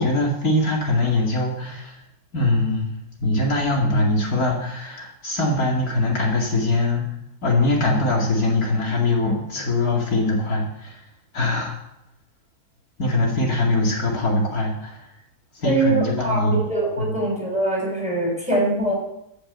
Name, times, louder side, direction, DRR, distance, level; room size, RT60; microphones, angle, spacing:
voice 1, 0.0-2.0 2.3-2.9 3.2-7.1 7.4-11.0 11.3-11.8 13.0-15.1 15.5-16.6 17.0-17.2, left 2 dB, 70° left, -1 dB, 2.7 m, -22 dB
voice 2, 15.6-18.9, right 2 dB, 5° right, -3 dB, 6.0 m, -23 dB
14.0 x 7.0 x 7.5 m, 0.79 s
omnidirectional pair, 1.6 m